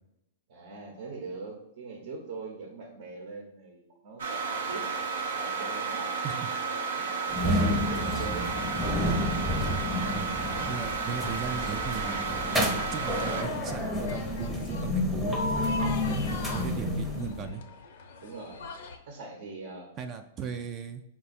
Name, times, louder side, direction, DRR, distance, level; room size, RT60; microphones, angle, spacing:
voice 1, 0.5-6.3 6.5-8.6 16.3-16.7 18.2-18.6 19.0-19.9, right 4 dB, 65° right, 1 dB, 0.9 m, -42 dB
sound 1, 4.2-13.4, right 5 dB, 85° right, 0.8 m, -32 dB
sound 2, 7.3-17.5, left 1 dB, 5° right, 0.7 m, -30 dB
voice 2, 10.7-12.2 12.6-15.6 16.1-17.6 20.0-21.0, right 7 dB, 30° right, 7 dB, 0.3 m, -37 dB
sound 3, 12.0-19.0, left 5 dB, 70° left, 0.6 m, -42 dB
4.7 x 2.2 x 4.1 m, 0.83 s
hypercardioid pair, 130°, 0 cm